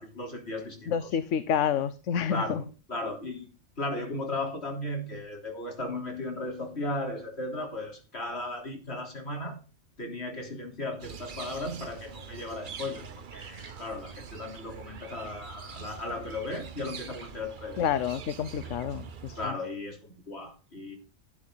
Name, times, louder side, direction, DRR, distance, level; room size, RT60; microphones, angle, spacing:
voice 1, 0.0-0.9 2.3-2.6 2.9-3.5 3.8-9.6 10.0-17.8 19.4-21.0, left 2 dB, 55° left, 3.8 m, -36 dB
voice 2, 0.9-2.6 17.8-19.5, left 8 dB, 75° left, 1.1 m, -29 dB
sound 1, 11.0-19.5, right 6 dB, 45° right, 0.9 m, -44 dB
12.0 x 10.5 x 3.9 m
omnidirectional pair, 1.3 m